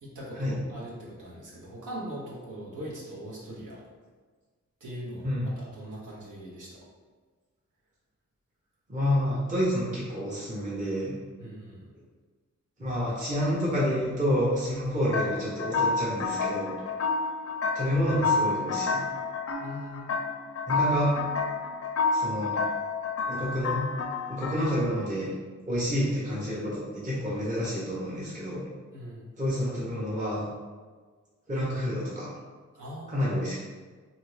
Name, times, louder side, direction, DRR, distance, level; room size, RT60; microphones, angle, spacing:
voice 1, 0.0-3.8 4.8-5.3 5.6-6.8 11.4-11.9 19.6-20.1 28.9-29.3 32.7-33.2, equal, 80° right, -7 dB, 0.9 m, -41 dB
voice 2, 8.9-11.1 12.8-16.7 17.7-19.0 20.7-21.1 22.1-22.6 23.3-23.8 24.3-25.3 25.7-28.6 29.4-30.5 31.5-32.3 33.1-33.6, equal, 25° right, -8 dB, 0.8 m, -28 dB
sound 1, 15.1-25.0, left 4 dB, 55° left, 0.4 m, -29 dB
2.7 x 2.5 x 3.2 m, 1.4 s
cardioid pair, 65°, 31 cm